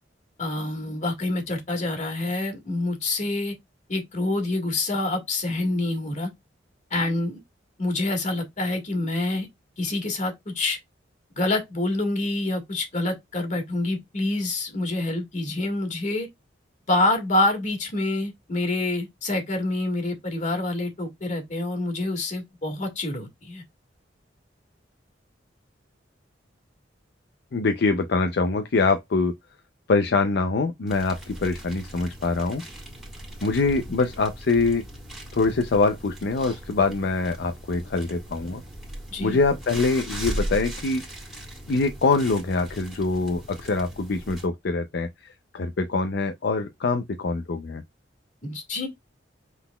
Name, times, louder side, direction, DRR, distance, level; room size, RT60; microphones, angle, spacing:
voice 1, 0.4-3.5 3.9-6.3 6.9-7.4 7.8-9.5 9.8-10.8 11.4-16.3 16.9-23.6 39.1-39.4 48.4-48.9, left 2 dB, 45° left, 1.7 m, -27 dB
voice 2, 27.5-29.3 29.9-32.6 33.4-34.8 35.3-38.6 39.2-41.0 41.7-47.8, left 3 dB, 65° left, 0.5 m, -24 dB
sound 1, 30.9-44.5, right 1 dB, ahead, 1.8 m, -38 dB
5.7 x 3.9 x 2.2 m
head